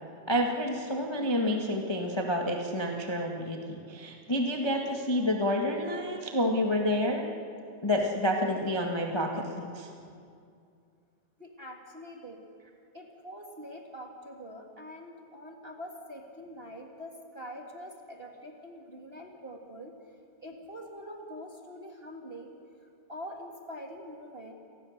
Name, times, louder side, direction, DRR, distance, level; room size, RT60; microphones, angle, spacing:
voice 1, 0.3-7.3 7.8-9.9, left 1 dB, 15° left, 1 dB, 0.9 m, -29 dB
voice 2, 11.4-12.4 12.9-19.9 20.4-22.5 22.8-24.5, equal, 25° right, 0 dB, 1.5 m, -44 dB
28.0 x 19.5 x 6.6 m, 2.4 s
omnidirectional pair, 3.5 m